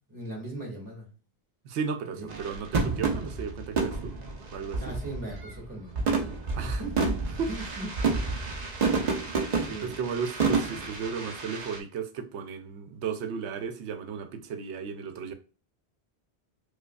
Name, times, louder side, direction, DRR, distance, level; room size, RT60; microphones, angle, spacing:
voice 1, 0.1-1.1 2.1-2.3 4.8-6.0 6.5-7.2 7.5-8.3 9.6-10.0, right 2 dB, 20° right, 1.5 m, -39 dB
voice 2, 1.6-4.1 4.5-4.9 6.5-6.8 7.4-7.5 9.5-15.3, right 6 dB, 85° right, 0.9 m, -35 dB
sound 1, 2.3-5.6 6.0-11.8, right 4 dB, 45° right, 0.6 m, -29 dB
4.8 x 2.3 x 2.2 m
omnidirectional pair, 1.1 m